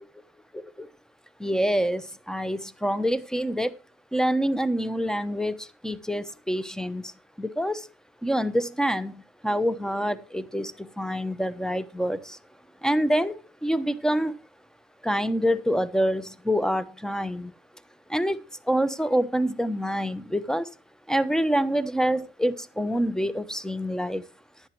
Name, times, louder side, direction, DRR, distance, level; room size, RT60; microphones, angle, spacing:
voice 1, 0.5-0.9 1.4-3.8 4.1-7.1 7.4-7.9 8.2-9.1 9.4-12.4 12.8-14.4 15.0-17.5 18.1-20.7 21.1-24.2, equal, 5° left, 15 dB, 1.1 m, -26 dB
15.0 x 10.5 x 3.1 m, 0.32 s
cardioid pair, 90°, 20 cm